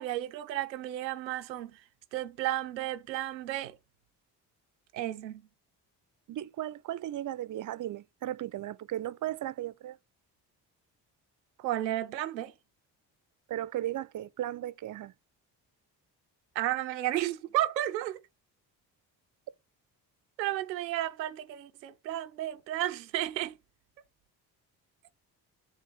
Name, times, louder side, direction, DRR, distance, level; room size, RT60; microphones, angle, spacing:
voice 1, 0.0-1.8 2.1-3.8 4.9-5.4 11.6-12.5 16.6-18.2 20.4-23.6, right 13 dB, 90° right, 0.6 m, -33 dB
voice 2, 6.3-10.0 13.5-15.1, right 13 dB, 40° right, 0.5 m, -36 dB
7.2 x 3.4 x 4.9 m
hypercardioid pair, 45°, 50 cm